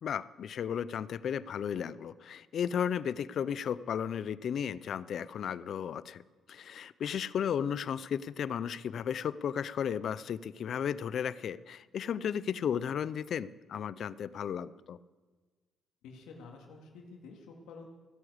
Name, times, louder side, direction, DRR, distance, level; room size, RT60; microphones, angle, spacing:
voice 1, 0.0-6.2 6.5-15.0, left 8 dB, 50° left, 18 dB, 0.5 m, -34 dB
voice 2, 16.0-17.9, left 4 dB, 85° left, 1 dB, 2.1 m, -50 dB
16.0 x 9.8 x 7.9 m, 1.3 s
cardioid pair, 135°, 0 cm